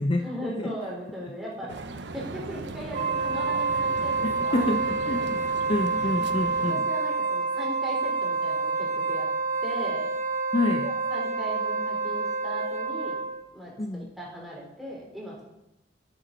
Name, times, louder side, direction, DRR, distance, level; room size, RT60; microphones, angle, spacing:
voice 1, 0.2-4.7 5.1-5.3 6.2-6.3 6.6-9.3 9.6-10.1 10.8-13.2 13.5-15.5, equal, ahead, -5 dB, 3.6 m, -38 dB
sound 1, 1.7-6.7, right 3 dB, 85° right, 0.7 m, -39 dB
Wind instrument woodwind instrument, 2.9-13.5, right 4 dB, 45° right, 0.9 m, -28 dB
voice 2, 4.2-6.8 10.5-10.9 13.8-14.1, left 2 dB, 30° left, 6 dB, 0.5 m, -28 dB
10.5 x 8.4 x 5.1 m, 0.91 s
head